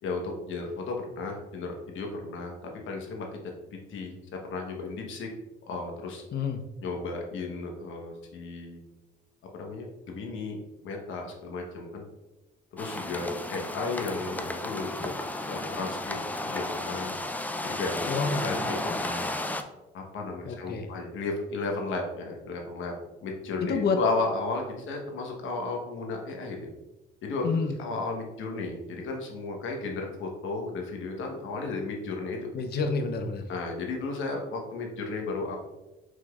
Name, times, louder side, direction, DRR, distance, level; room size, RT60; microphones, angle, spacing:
voice 1, 0.0-2.6 2.9-3.3 3.7-5.3 5.7-6.2 6.8-8.8 9.5-12.0 12.7-15.1 15.5-17.1 17.6-18.1 18.4-19.2 19.9-22.9 23.2-26.7 27.2-27.5 27.8-32.4 33.5-35.6, left 3 dB, 75° left, 1 dB, 1.1 m, -34 dB
sound 1, 12.8-19.6, left 2 dB, 10° left, 0.4 m, -33 dB
voice 2, 18.1-18.5 20.4-20.9 23.7-24.0 27.4-27.7 32.5-33.4, left 4 dB, 55° left, 5 dB, 0.6 m, -28 dB
6.1 x 3.7 x 2.3 m, 1.0 s
cardioid pair, 90°, 20 cm